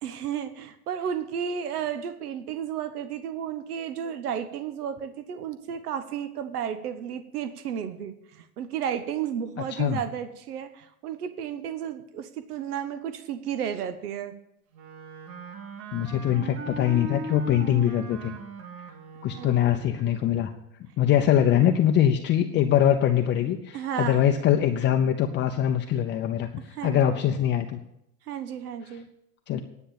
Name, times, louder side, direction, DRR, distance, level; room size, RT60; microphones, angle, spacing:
voice 1, 0.0-14.3 19.4-19.8 23.7-24.3 26.7-27.2 28.3-29.1, right 8 dB, 90° right, 10 dB, 1.2 m, -33 dB
Wind instrument woodwind instrument, 14.7-20.1, right 3 dB, 45° right, 2.1 m, -39 dB
voice 2, 15.9-18.4 19.2-20.5 21.0-27.8 29.5-29.6, left 10 dB, 25° left, 4 dB, 0.6 m, -23 dB
10.5 x 6.8 x 8.5 m, 0.81 s
supercardioid pair, 135°, 44 cm